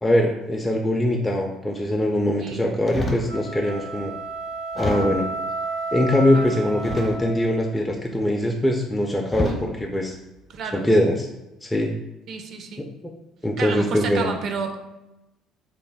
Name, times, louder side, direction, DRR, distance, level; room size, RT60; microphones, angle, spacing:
voice 1, 0.0-4.1 4.7-5.3 5.9-10.1 10.7-11.3 11.6-11.9 12.8-13.1 13.4-14.3, left 1 dB, 15° left, 0 dB, 0.4 m, -22 dB
sound 1, 2.9-3.4 4.0-4.1 4.7-5.4 6.8-7.5 8.6-8.8 9.3-9.7 10.4-10.7, equal, 35° left, 0.7 m, -30 dB
sound 2, 3.3-7.8, right 3 dB, 85° right, 0.8 m, -32 dB
voice 2, 9.3-9.7 10.5-10.9 12.3-12.9 13.6-14.8, right 5 dB, 60° right, 5 dB, 0.4 m, -31 dB
3.0 x 2.1 x 3.4 m, 0.95 s
hypercardioid pair, 60°, 0 cm